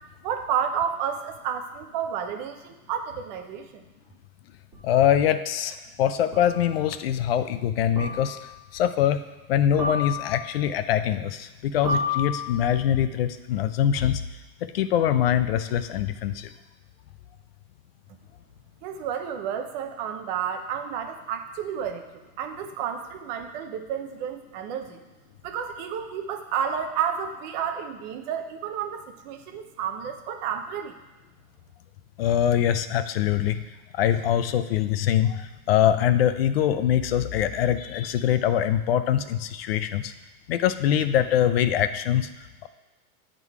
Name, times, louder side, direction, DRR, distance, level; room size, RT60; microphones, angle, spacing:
voice 1, 0.2-3.8 18.8-22.0 22.4-25.0 25.4-31.0, right 8 dB, 30° right, 5 dB, 0.7 m, -31 dB
sound 1, 4.7-4.8 6.3-6.7 8.0-8.5 9.8-10.6 11.9-12.8, left 3 dB, 15° right, 2.6 m, -31 dB
voice 2, 4.8-8.4 8.7-9.2 9.5-14.2 14.6-16.5 32.2-33.6 33.9-40.1 40.5-42.3 42.6-42.7, left 10 dB, 45° left, 11 dB, 0.4 m, -23 dB
9.7 x 3.8 x 4.7 m, 1.2 s
hypercardioid pair, 145°, 45 cm